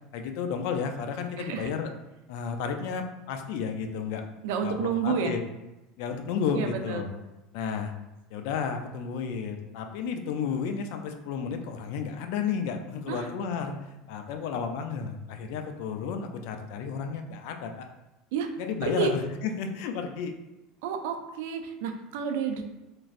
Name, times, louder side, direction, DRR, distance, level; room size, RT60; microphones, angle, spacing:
voice 1, 0.1-1.9 2.3-4.3 4.6-5.4 6.0-7.1 7.5-7.9 8.3-13.8 14.1-17.8 18.6-19.2 19.6-20.3, left 6 dB, 70° left, 5 dB, 0.4 m, -32 dB
voice 2, 1.4-1.7 4.4-5.4 6.5-7.1 13.1-13.3 18.3-18.5 18.8-19.1 20.8-22.6, right 6 dB, 75° right, 5 dB, 0.4 m, -30 dB
3.0 x 2.5 x 2.4 m, 0.99 s
supercardioid pair, 120°, 0 cm